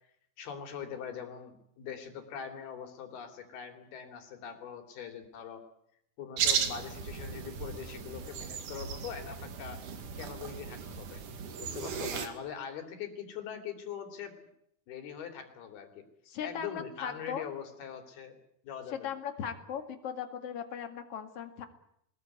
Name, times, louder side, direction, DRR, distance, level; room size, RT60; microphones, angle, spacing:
voice 1, 0.4-5.6 6.2-9.8 10.2-11.2 11.6-14.3 14.9-16.0 16.4-18.4 18.6-19.1, left 8 dB, 75° left, 6 dB, 4.9 m, -42 dB
sound 1, 6.4-12.3, right 7 dB, 60° right, 3.4 m, -35 dB
voice 2, 16.3-17.4 18.9-21.7, left 8 dB, 45° left, 7 dB, 2.6 m, -38 dB
22.0 x 20.5 x 9.5 m, 0.74 s
omnidirectional pair, 4.5 m